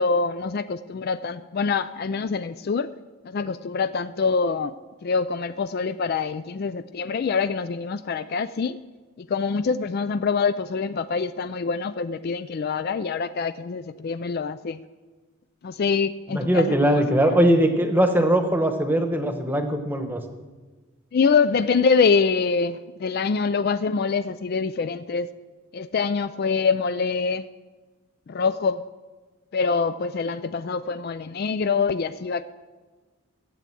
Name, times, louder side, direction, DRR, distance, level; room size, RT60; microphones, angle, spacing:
voice 1, 0.0-2.9 3.2-4.7 5.0-8.8 9.2-14.8 15.6-17.0 17.3-17.4 21.1-25.3 25.7-27.5 28.3-28.8 29.5-32.4, left 5 dB, 45° left, 13 dB, 0.3 m, -25 dB
voice 2, 16.3-20.2, right 1 dB, 10° right, 6 dB, 1.0 m, -20 dB
14.0 x 8.3 x 7.6 m, 1.3 s
head